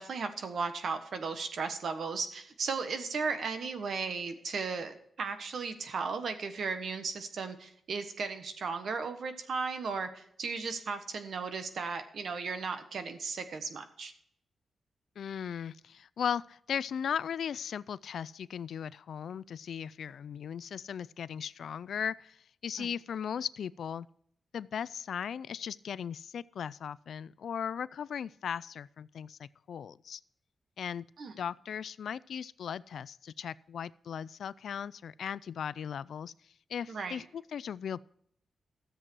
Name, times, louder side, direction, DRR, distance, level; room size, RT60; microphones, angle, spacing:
voice 1, 0.0-14.1 22.8-22.9 31.2-31.3 36.9-37.2, right 5 dB, 65° right, 8 dB, 1.3 m, -36 dB
voice 2, 15.2-24.1 24.5-30.2 30.8-31.1 31.4-36.3 36.7-38.0, left 8 dB, 75° left, 20 dB, 0.3 m, -37 dB
13.5 x 7.6 x 4.6 m, 0.68 s
wide cardioid pair, 140°, 0 cm